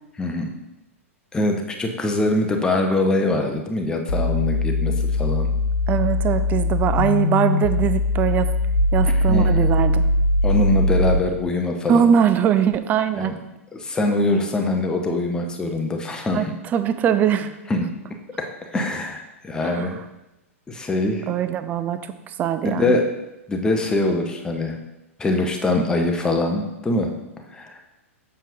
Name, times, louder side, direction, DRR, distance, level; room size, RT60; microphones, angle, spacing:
voice 1, 0.2-0.5 1.3-5.5 9.3-9.6 10.4-12.1 13.2-13.3 13.7-16.5 17.7-17.9 18.4-20.0 20.7-21.3 22.6-23.1 23.5-24.8 25.2-27.1 27.5-27.8, left 2 dB, 10° left, 3 dB, 0.8 m, -23 dB
sound 1, 4.1-11.2, left 2 dB, 70° left, 0.8 m, -21 dB
voice 2, 5.9-8.5 8.9-10.0 11.9-13.3 16.3-17.5 19.6-19.9 21.3-23.0, right 8 dB, 20° right, 11 dB, 0.4 m, -21 dB
7.3 x 6.6 x 2.7 m, 0.95 s
figure-of-eight pair, 100°, 8 cm